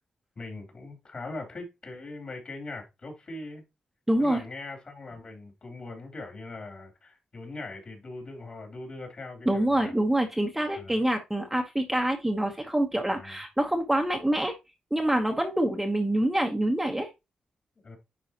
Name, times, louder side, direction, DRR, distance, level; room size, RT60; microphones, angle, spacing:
voice 1, 0.4-3.6 4.2-9.9 10.8-11.0 13.2-13.4 17.8-18.0, left 2 dB, 45° left, 3.1 m, -41 dB
voice 2, 4.1-4.4 9.5-14.5 14.9-17.1, right 1 dB, 10° right, 1.0 m, -26 dB
10.5 x 3.8 x 2.9 m
cardioid pair, 100°, 2 cm